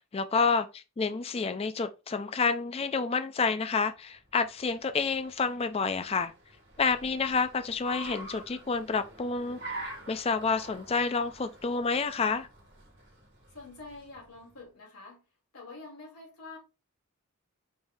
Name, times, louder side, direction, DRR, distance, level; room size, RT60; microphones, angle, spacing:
voice 1, 0.0-6.3 6.8-9.7 10.1-12.5, left 4 dB, 25° left, 0.3 m, -29 dB
Car, 4.3-14.5, right 2 dB, 50° right, 1.7 m, -46 dB
voice 2, 13.5-15.2 15.5-16.6, left 3 dB, 90° left, 2.8 m, -47 dB
5.2 x 3.5 x 2.6 m
head